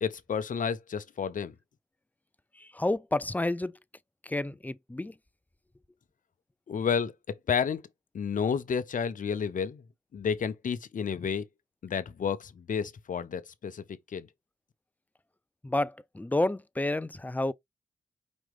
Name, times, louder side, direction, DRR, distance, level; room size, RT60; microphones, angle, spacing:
voice 1, 0.0-1.5 6.7-7.8 8.1-9.8 10.1-11.5 11.8-14.3, left 6 dB, 60° left, 0.8 m, -31 dB
voice 2, 2.6-3.7 4.2-5.1 15.6-17.5, left 2 dB, 10° left, 0.5 m, -30 dB
5.3 x 2.9 x 3.2 m
supercardioid pair, 40°, 15 cm